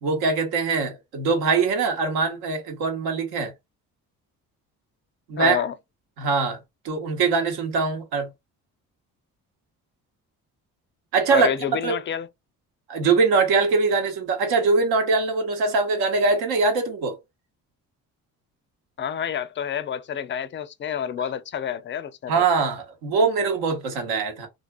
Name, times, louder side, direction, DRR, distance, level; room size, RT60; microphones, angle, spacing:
voice 1, 0.0-3.5 5.3-5.6 6.2-6.6 6.8-8.3 11.1-11.5 11.8-12.0 12.9-17.2 22.3-24.5, right 4 dB, 80° right, 0.9 m, -22 dB
voice 2, 5.4-5.7 11.3-12.3 19.0-22.5, left 8 dB, 30° left, 0.4 m, -28 dB
2.4 x 2.3 x 2.3 m
hypercardioid pair, 55°, 38 cm